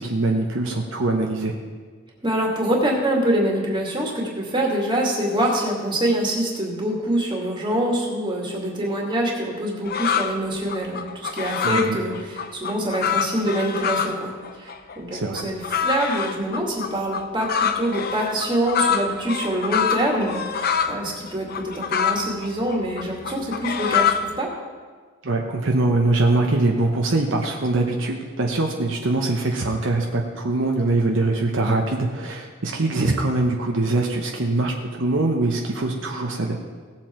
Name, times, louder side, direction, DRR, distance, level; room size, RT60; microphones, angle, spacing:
voice 1, 0.0-1.5 11.6-12.0 15.1-15.4 25.2-36.6, right 2 dB, 65° right, 1 dB, 1.0 m, -23 dB
voice 2, 2.2-14.3 14.6-24.5, right 1 dB, 25° right, -1 dB, 2.3 m, -25 dB
sound 1, 9.9-10.3 10.7-14.2 14.4-21.0 21.3-24.4, left 7 dB, 50° left, 0.7 m, -25 dB
17.5 x 7.4 x 4.5 m, 1.5 s
head